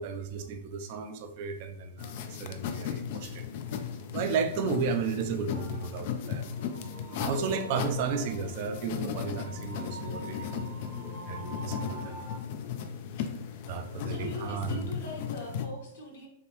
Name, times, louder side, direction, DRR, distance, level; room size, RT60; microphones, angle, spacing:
voice 1, 0.0-3.5 4.1-6.5 7.1-10.6 11.3-12.2 13.7-14.8, right 6 dB, 50° right, 8 dB, 0.4 m, -33 dB
sound 1, 2.0-15.7, left 8 dB, 55° left, 0.3 m, -36 dB
sound 2, 5.5-12.4, right 1 dB, 35° left, 0.7 m, -45 dB
voice 2, 10.8-11.2 14.0-16.3, left 1 dB, 75° left, -3 dB, 1.3 m, -42 dB
3.3 x 2.5 x 2.9 m, 0.73 s
hypercardioid pair, 120°, 0 cm